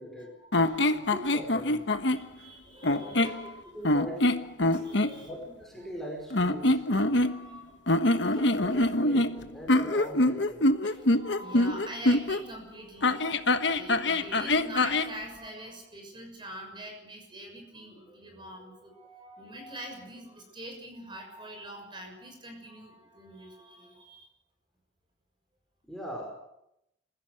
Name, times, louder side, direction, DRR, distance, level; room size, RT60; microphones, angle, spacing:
voice 1, 0.0-1.2 2.1-3.9 4.7-5.3 7.0-8.4 10.8-24.3, right 1 dB, 25° right, 3 dB, 6.5 m, -44 dB
sound 1, 0.5-2.2 2.8-3.4 3.8-5.1 6.3-7.6 7.9-12.4 13.0-15.1, left 2 dB, 75° left, 1.4 m, -25 dB
voice 2, 0.9-1.8 3.0-3.4 3.6-4.4 5.0-7.2 8.2-10.7 25.8-26.3, equal, ahead, -1 dB, 5.2 m, -41 dB
27.0 x 16.0 x 7.9 m, 0.83 s
head